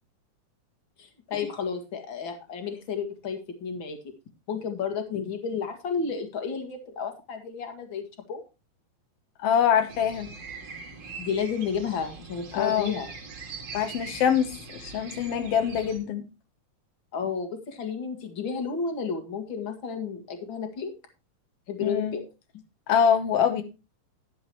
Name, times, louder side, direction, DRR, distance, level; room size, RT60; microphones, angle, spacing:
voice 1, 1.0-4.0 4.5-8.4 11.2-13.1 17.1-20.9 21.7-22.3, left 6 dB, 40° left, 6 dB, 2.1 m, -32 dB
voice 2, 9.4-10.3 12.5-13.0 13.7-14.5 14.8-16.2 21.8-22.1 22.9-23.6, left 8 dB, 90° left, 8 dB, 1.3 m, -24 dB
sound 1, 9.9-16.0, right 4 dB, 45° right, 3.3 m, -42 dB
12.0 x 10.5 x 3.0 m, 0.28 s
omnidirectional pair, 4.2 m